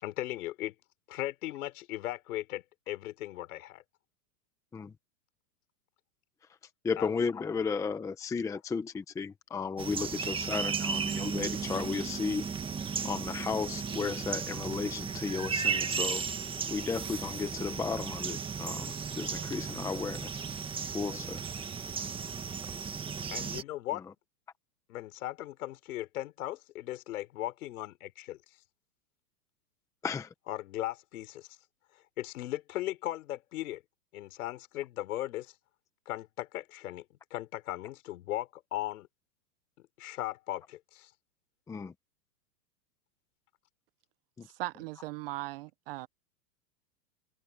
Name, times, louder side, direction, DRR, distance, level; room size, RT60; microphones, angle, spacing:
voice 1, 0.0-0.7 1.1-3.8 7.0-7.1 23.3-24.0 24.9-28.4 30.5-31.5 32.2-33.8 34.1-35.5 36.1-37.0 37.3-39.1 40.0-41.1, left 15 dB, 65° left, 5.7 m, -37 dB
voice 2, 6.8-12.5 13.0-16.2 16.7-20.4 20.9-21.4 30.0-30.3 41.7-41.9 44.4-44.5, left 5 dB, 5° left, 0.8 m, -34 dB
sound 1, 9.8-23.6, right 6 dB, 10° right, 1.5 m, -35 dB
voice 3, 44.6-46.1, right 18 dB, 40° right, 0.6 m, -38 dB
supercardioid pair, 150°, 47 cm